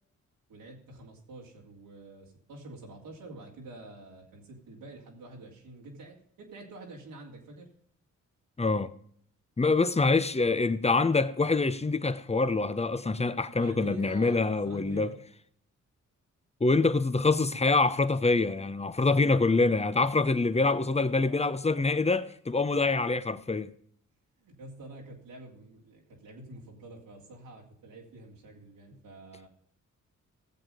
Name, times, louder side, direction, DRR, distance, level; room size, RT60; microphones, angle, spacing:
voice 1, 0.5-7.7 13.5-14.4 14.6-15.2 20.8-21.4 21.8-22.0 24.4-29.5, right 2 dB, 90° right, 3.1 m, -47 dB
voice 2, 8.6-8.9 9.6-15.1 16.6-23.7, left 3 dB, 20° left, 0.9 m, -25 dB
16.5 x 7.4 x 5.1 m
cardioid pair, 60°, 33 cm